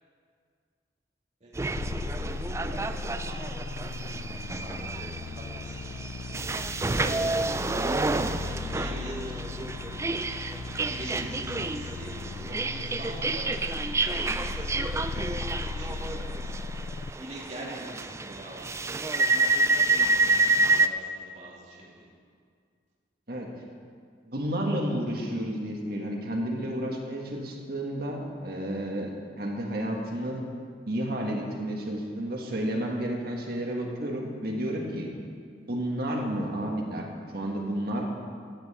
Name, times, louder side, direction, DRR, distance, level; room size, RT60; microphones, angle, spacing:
voice 1, 1.4-2.2 2.6-3.6 4.0-5.8 8.4-9.4 10.8-12.1 12.5-16.7 17.2-22.1, right 1 dB, 40° right, -5 dB, 2.6 m, -45 dB
sound 1, 1.6-20.9, right 3 dB, 15° right, 0.3 m, -29 dB
sound 2, 1.7-17.1, left 4 dB, 85° left, 0.4 m, -37 dB
voice 2, 24.3-30.4 30.9-35.1 35.6-37.1 37.3-38.0, right 1 dB, 60° right, 0 dB, 1.7 m, -31 dB
14.0 x 9.0 x 4.4 m, 2.1 s
head